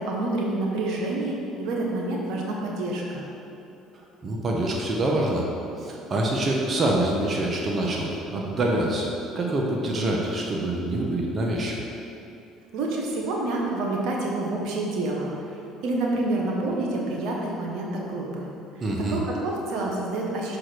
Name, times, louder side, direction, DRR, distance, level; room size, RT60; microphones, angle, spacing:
voice 1, 0.0-3.2 12.7-15.3 15.8-18.5 19.1-20.6, right 2 dB, 70° right, -2 dB, 1.3 m, -28 dB
voice 2, 3.9-5.5 5.8-9.1 9.3-11.8 18.8-19.2, right 1 dB, 40° right, -1 dB, 1.2 m, -26 dB
6.2 x 5.0 x 6.1 m, 2.8 s
supercardioid pair, 75°, 0 cm